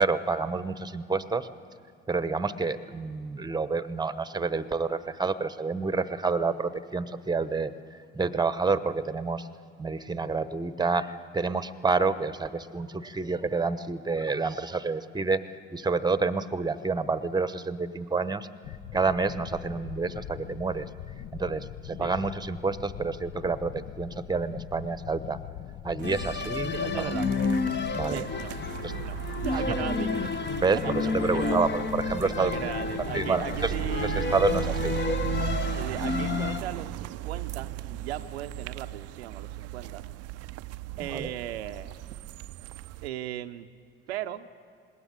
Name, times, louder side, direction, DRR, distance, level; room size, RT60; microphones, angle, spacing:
voice 1, 0.0-1.5 2.1-9.5 9.8-15.5 15.7-20.9 21.3-25.4 25.8-27.1 27.9-28.2 28.8-29.0 29.5-29.6 30.6-32.5 33.1-33.7 34.0-34.9 41.1-41.3, right 4 dB, 15° right, 14 dB, 1.0 m, -29 dB
sound 1, 18.6-35.6, left 11 dB, 50° left, 0.7 m, -42 dB
sound 2, 26.0-36.6, left 4 dB, 35° left, 1.2 m, -30 dB
sound 3, 26.0-43.1, right 14 dB, 55° right, 0.5 m, -37 dB
voice 2, 26.7-27.3 28.1-28.7 29.0-30.3 30.6-31.7 32.2-34.4 35.7-40.0 41.0-41.9 43.0-43.7 44.1-44.5, right 12 dB, 85° right, 9 dB, 0.7 m, -37 dB
20.5 x 17.5 x 8.5 m, 2.4 s
hypercardioid pair, 60°, 31 cm